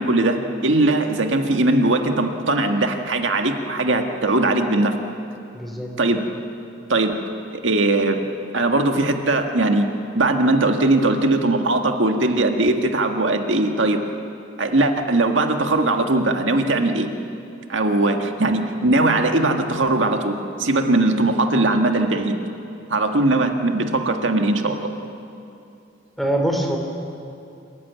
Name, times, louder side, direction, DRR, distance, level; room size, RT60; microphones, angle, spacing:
voice 1, 0.0-5.0 6.0-6.3 6.9-7.1 7.5-8.2 8.5-9.9 10.1-14.0 14.6-17.1 17.7-22.4 22.9-24.8, right 2 dB, 85° right, 5 dB, 1.7 m, -20 dB
voice 2, 5.5-5.9 26.2-26.8, right 1 dB, ahead, 1 dB, 3.3 m, -23 dB
27.5 x 15.0 x 9.4 m, 2.6 s
head